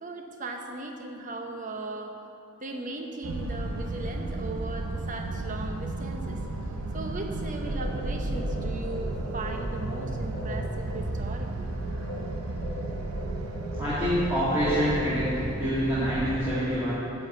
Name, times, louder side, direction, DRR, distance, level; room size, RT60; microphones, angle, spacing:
voice 1, 0.0-2.2 2.6-6.4 6.9-11.7, right 2 dB, 35° right, 3 dB, 0.8 m, -37 dB
sound 1, 3.2-16.6, right 2 dB, 85° right, 0.7 m, -33 dB
sound 2, 7.3-15.7, left 1 dB, 50° left, 1.2 m, -41 dB
voice 2, 13.8-15.3 15.6-17.0, equal, 10° right, -12 dB, 2.1 m, -26 dB
10.5 x 4.6 x 7.8 m, 2.7 s
head